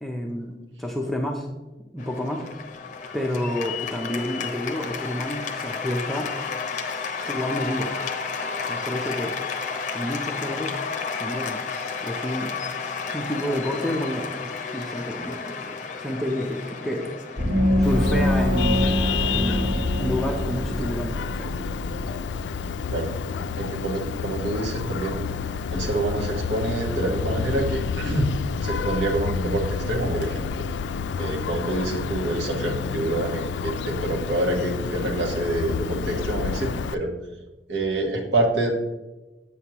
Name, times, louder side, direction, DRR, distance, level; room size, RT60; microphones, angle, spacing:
voice 1, 0.0-1.5 1.9-2.5 3.1-6.3 7.3-7.9 8.6-9.3 9.9-10.8 11.1-11.6 12.0-12.5 13.1-17.2 17.8-18.9 19.3-21.5, left 1 dB, ahead, 0 dB, 0.5 m, -29 dB
Cheering / Applause, 2.0-21.2, left 5 dB, 45° left, 0.7 m, -32 dB
Gong, 17.4-22.6, left 1 dB, 65° right, 2.0 m, -24 dB
Vehicle horn car horn honking, 17.8-36.9, left 6 dB, 90° left, 0.3 m, -30 dB
voice 2, 23.6-25.3 25.7-28.2 28.6-30.7 31.2-37.1 37.7-38.7, right 2 dB, 85° right, 0 dB, 1.4 m, -26 dB
8.1 x 6.3 x 2.9 m, 1.1 s
head